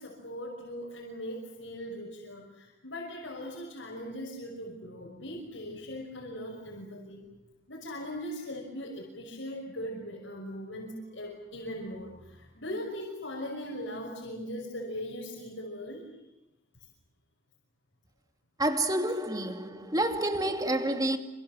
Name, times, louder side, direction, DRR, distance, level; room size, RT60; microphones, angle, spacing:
voice 1, 0.0-7.2 7.7-16.1, equal, 85° left, 6.1 m, -39 dB
voice 2, 18.6-21.2, right 1 dB, 20° right, 2.5 m, -28 dB
27.5 x 27.0 x 7.6 m
head